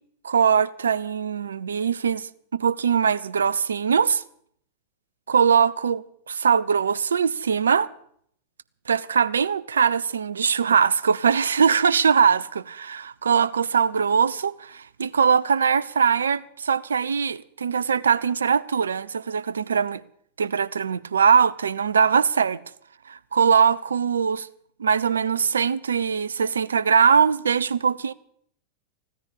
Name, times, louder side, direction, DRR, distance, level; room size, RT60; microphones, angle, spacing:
voice 1, 0.2-4.2 5.3-7.9 8.9-20.0 20.4-22.6 23.1-24.5 24.8-28.1, right 6 dB, 70° right, 0.6 m, -21 dB
15.5 x 10.0 x 8.6 m
figure-of-eight pair, 90°, 0 cm